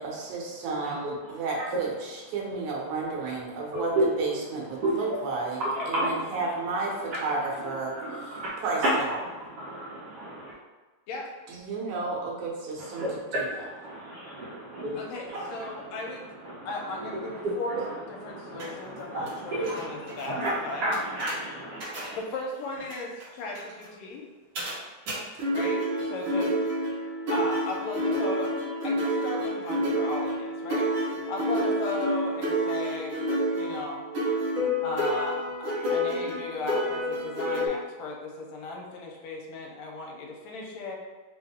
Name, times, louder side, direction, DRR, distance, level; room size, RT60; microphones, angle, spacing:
voice 1, 0.0-9.2 11.5-13.1 13.3-13.5, right 3 dB, 90° right, -3 dB, 2.3 m, -32 dB
voice 2, 3.7-4.1 4.8-5.0 5.6-6.5 6.8-7.2 7.6-7.7 7.9-8.5 9.2-10.5 12.8-22.1, right 1 dB, 75° right, -6 dB, 1.4 m, -33 dB
voice 3, 14.9-16.3 16.7-17.8 18.1-20.9 22.1-24.2 25.5-26.5 27.3-28.5 28.8-30.9 31.3-33.2 33.6-34.0 34.8-41.0, left 2 dB, 80° left, -1 dB, 1.9 m, -36 dB
sound 1, 18.6-18.7 19.3-19.4 19.6-19.8 20.1-20.2 20.9-21.4 21.8-22.1 22.9-23.0 23.2-23.3 23.5-23.7 24.6-24.7 25.1-25.2 25.4-37.7, equal, 55° right, 1.7 m, -29 dB
4.8 x 2.2 x 3.5 m, 1.3 s
omnidirectional pair, 3.3 m